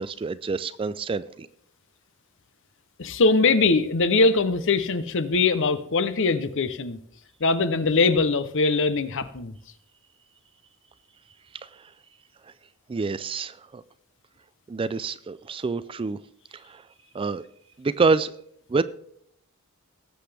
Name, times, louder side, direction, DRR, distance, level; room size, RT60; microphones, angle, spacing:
voice 1, 0.0-1.5 11.5-11.7 12.9-13.8 14.7-16.2 16.5-16.8 17.1-17.5 17.8-18.3 18.7-18.8, right 4 dB, 25° right, 0.3 m, -27 dB
voice 2, 3.0-7.0 7.4-9.6, left 3 dB, 60° left, 0.8 m, -22 dB
19.0 x 7.9 x 3.4 m
head